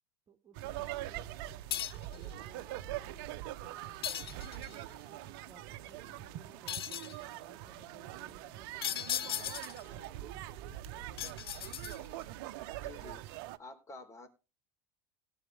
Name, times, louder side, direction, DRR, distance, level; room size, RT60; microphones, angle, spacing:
voice 1, 0.3-4.2 4.7-11.3, right 7 dB, 30° right, 2 dB, 2.0 m, -60 dB
sound 1, 0.5-13.6, right 14 dB, 65° right, 0.9 m, -43 dB
sound 2, 1.7-2.2 4.0-4.8 6.7-7.2 8.8-9.9 11.2-12.2, left 11 dB, 85° left, 0.5 m, -37 dB
sound 3, 2.1-12.8, left 7 dB, 60° left, 2.7 m, -62 dB
voice 2, 12.8-13.2 13.6-14.3, left 2 dB, 25° left, 8 dB, 4.0 m, -49 dB
17.5 x 8.0 x 3.4 m, 0.30 s
hypercardioid pair, 85°, 12 cm